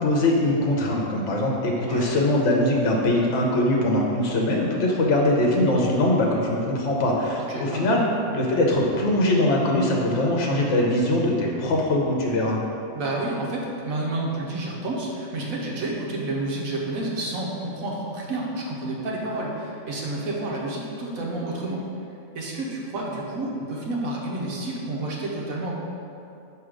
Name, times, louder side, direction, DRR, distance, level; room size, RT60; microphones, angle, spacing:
voice 1, 0.0-8.0 8.3-12.6, left 1 dB, 60° left, -2 dB, 1.1 m, -22 dB
voice 2, 7.4-8.0 12.9-21.8 22.3-25.7, right 2 dB, 80° right, -2 dB, 1.3 m, -30 dB
6.2 x 3.2 x 4.9 m, 2.6 s
omnidirectional pair, 1.4 m